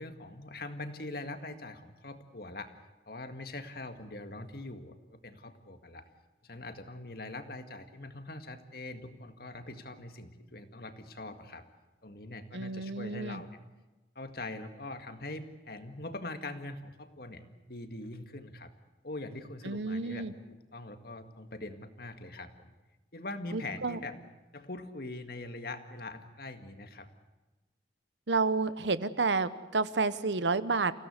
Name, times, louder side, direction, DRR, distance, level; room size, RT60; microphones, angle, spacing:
voice 1, 0.0-2.7 3.1-6.1 6.4-11.7 12.0-13.6 14.2-18.7 19.0-22.7 23.1-24.2 24.5-27.1, left 2 dB, 60° left, 7 dB, 1.9 m, -43 dB
voice 2, 12.5-13.4 19.6-20.3 23.5-24.0 28.3-30.9, right 4 dB, 90° right, 14 dB, 1.0 m, -30 dB
28.5 x 16.5 x 8.1 m, 1.1 s
head